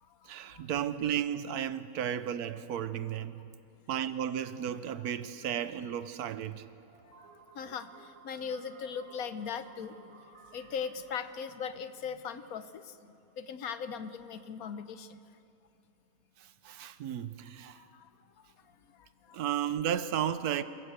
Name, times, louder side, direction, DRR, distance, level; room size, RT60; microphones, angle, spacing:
voice 1, 0.3-3.4 3.9-6.6 16.6-17.8 19.3-20.6, right 9 dB, 80° right, 1.3 m, -33 dB
sound 1, 6.9-12.7, right 4 dB, 55° right, 2.6 m, -57 dB
voice 2, 7.5-10.2 10.5-15.2 17.7-18.1 19.3-19.4, left 6 dB, 70° left, 1.3 m, -39 dB
28.0 x 14.0 x 8.1 m
omnidirectional pair, 1.6 m